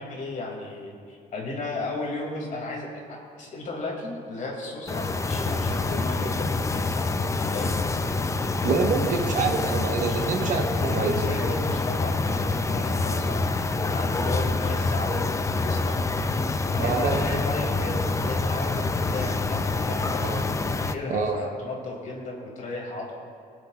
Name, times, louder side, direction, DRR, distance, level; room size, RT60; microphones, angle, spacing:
voice 1, 0.0-7.1 7.4-7.7 10.1-10.2 10.8-13.5 13.9-20.2 20.8-23.1, left 2 dB, 50° left, -1 dB, 2.5 m, -34 dB
sound 1, 4.9-20.9, left 3 dB, 20° left, 0.5 m, -26 dB
voice 2, 8.6-11.1 16.8-17.2 20.2-20.4 21.1-21.4, right 5 dB, 50° right, 3 dB, 1.2 m, -26 dB
21.5 x 7.9 x 2.4 m, 2.6 s
cardioid pair, 110°, 17 cm